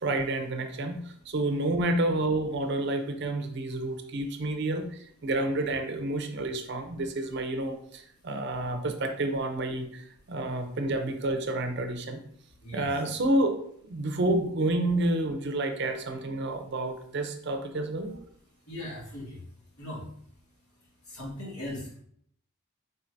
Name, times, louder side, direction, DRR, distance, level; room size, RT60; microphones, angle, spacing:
voice 1, 0.0-12.2 12.7-13.6 13.8-18.1, right 1 dB, 50° right, 6 dB, 0.5 m, -29 dB
voice 2, 12.6-13.0 18.7-19.5 19.8-20.1 20.8-22.0, left 1 dB, 90° left, -4 dB, 1.8 m, -39 dB
4.4 x 3.9 x 2.6 m, 0.66 s
head